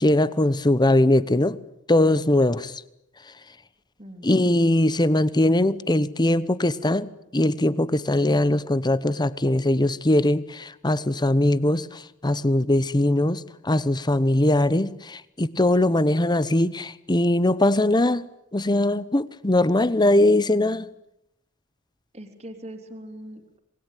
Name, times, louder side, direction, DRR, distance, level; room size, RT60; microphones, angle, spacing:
voice 1, 0.0-1.6 1.9-2.8 4.2-18.2 18.5-20.8, left 1 dB, 20° left, 0.9 m, -21 dB
voice 2, 4.0-4.3 22.1-23.6, right 1 dB, 30° right, 3.2 m, -41 dB
27.0 x 20.5 x 9.1 m
head